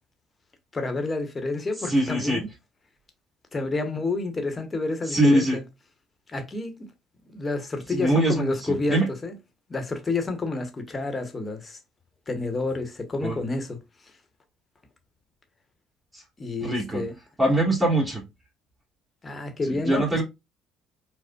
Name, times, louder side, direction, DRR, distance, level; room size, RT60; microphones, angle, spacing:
voice 1, 0.7-2.5 3.5-5.6 6.3-6.9 7.3-9.4 9.7-11.8 12.3-13.8 16.4-17.1 19.2-20.2, left 3 dB, 30° left, 0.9 m, -29 dB
voice 2, 1.9-2.4 5.1-5.6 7.9-9.1 13.2-13.3 16.6-17.0 17.4-18.2 19.7-20.2, right 1 dB, 20° right, 1.6 m, -22 dB
4.9 x 2.1 x 2.2 m
supercardioid pair, 75°, 0 cm